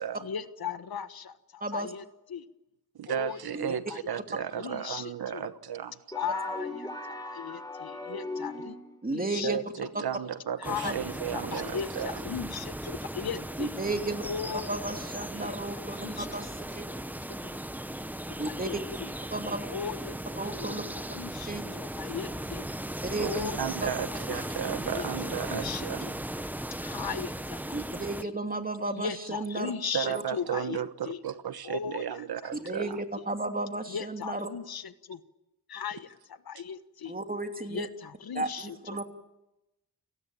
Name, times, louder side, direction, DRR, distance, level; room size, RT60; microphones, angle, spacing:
voice 1, 0.2-2.0 2.3-2.5 3.1-3.4 3.9-4.0 4.6-5.4 6.1-6.9 7.2-8.8 9.1-9.9 10.6-13.7 14.2-14.7 15.3-15.6 15.9-16.3 16.9-17.0 17.4-17.6 18.4-19.1 19.7-20.2 20.5-22.7 23.2-23.6 24.1-24.4 24.9-25.1 25.5-26.1 26.8-28.3 28.9-31.2 31.6-32.5 32.8-32.9 33.9-35.2 35.7-37.2 37.6-39.0, left 7 dB, 75° left, 1.4 m, -38 dB
voice 2, 2.9-5.9 9.4-12.2 23.2-26.1 26.4-26.5 29.9-33.0, right 9 dB, 85° right, 1.2 m, -34 dB
sound 1, 6.1-9.0, left 2 dB, 10° left, 3.9 m, -38 dB
voice 3, 9.0-9.6 10.8-10.9 13.6-14.2 14.7-16.5 16.7-16.9 18.4-18.8 19.3-19.7 20.4-20.8 21.5-21.6 23.0-23.5 23.8-23.9 27.7-29.7 30.0-30.2 32.6-34.5 37.1-37.9 38.3-39.1, right 2 dB, 25° right, 3.0 m, -33 dB
sound 2, 10.6-28.2, right 1 dB, 5° right, 0.9 m, -37 dB
29.5 x 18.5 x 8.9 m
wide cardioid pair, 90°, 37 cm